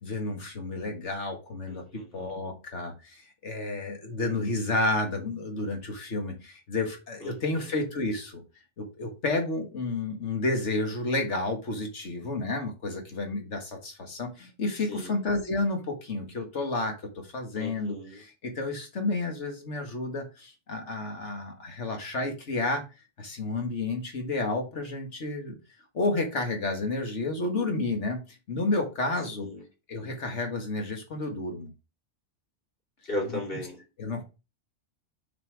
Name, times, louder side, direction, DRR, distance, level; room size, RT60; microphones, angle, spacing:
voice 1, 0.0-1.8 2.1-8.4 8.8-22.8 23.2-25.6 25.9-29.5 29.9-31.7 34.0-34.2, left 2 dB, 80° left, 3 dB, 1.9 m, -31 dB
voice 2, 1.7-2.3 7.2-7.7 14.9-15.2 17.5-18.2 29.4-29.6 33.1-33.8, left 1 dB, 50° left, -1 dB, 2.9 m, -37 dB
6.7 x 4.4 x 5.0 m, 0.29 s
omnidirectional pair, 1.2 m